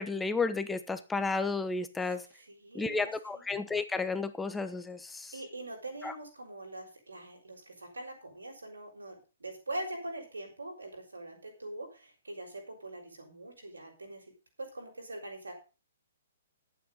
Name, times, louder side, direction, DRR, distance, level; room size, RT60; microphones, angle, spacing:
voice 1, 0.0-2.2 2.7-5.3 6.0-6.1, left 3 dB, 10° left, 10 dB, 1.0 m, -32 dB
voice 2, 2.0-3.4 5.3-14.3 14.6-15.5, right 1 dB, 85° right, 2 dB, 6.1 m, -43 dB
11.5 x 9.0 x 5.6 m, 0.33 s
figure-of-eight pair, 120°, 0 cm